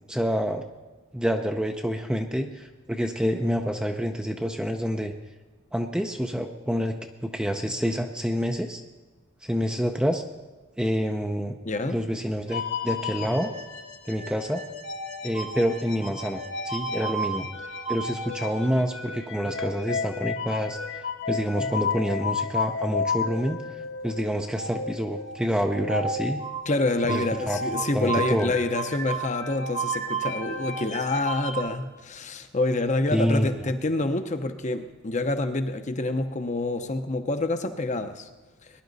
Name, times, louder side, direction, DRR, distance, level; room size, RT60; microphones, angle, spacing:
voice 1, 0.1-0.6 1.1-5.1 5.7-6.9 7.2-8.8 9.4-10.2 10.8-11.6 11.9-13.5 14.1-14.6 15.2-17.5 17.9-23.6 24.0-26.4 27.1-28.5 33.1-33.7, equal, 5° right, 5 dB, 0.6 m, -27 dB
voice 2, 11.6-12.0 26.7-38.3 38.6-38.7, left 2 dB, 35° left, 8 dB, 0.8 m, -27 dB
sound 1, 12.5-31.6, left 1 dB, 65° left, 1.4 m, -32 dB
20.0 x 11.0 x 4.1 m, 1.3 s
head